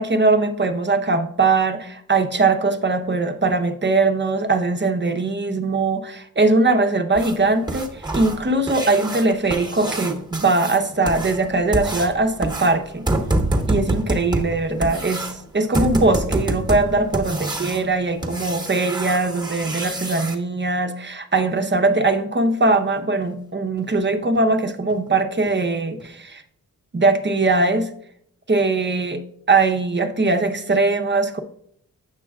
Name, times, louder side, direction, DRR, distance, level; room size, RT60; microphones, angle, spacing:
voice 1, 0.0-13.1 13.7-26.4 26.9-27.9 28.5-29.2 29.5-31.4, right 3 dB, 35° right, 7 dB, 0.7 m, -20 dB
sound 1, 7.1-20.3 22.7-22.8 23.2-23.3 23.8-23.9 24.3-24.4 24.9-25.1 25.4-25.5 26.0-26.1, right 2 dB, 15° right, 1.1 m, -27 dB
8.1 x 6.0 x 2.3 m, 0.68 s
cardioid pair, 65°, 33 cm